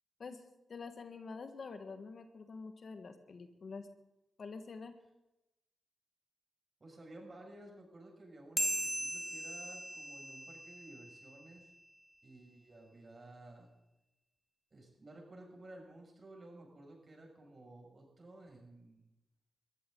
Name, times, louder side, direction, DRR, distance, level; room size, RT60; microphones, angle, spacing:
voice 1, 0.7-3.9 4.4-4.9, left 4 dB, 60° left, 8 dB, 1.6 m, -47 dB
voice 2, 6.8-11.7 12.2-13.7 14.7-19.1, right 1 dB, 45° right, 1 dB, 6.6 m, -54 dB
sound 1, 8.6-11.4, right 1 dB, 5° right, 0.8 m, -38 dB
23.0 x 14.5 x 3.9 m, 0.96 s
supercardioid pair, 45°, 0 cm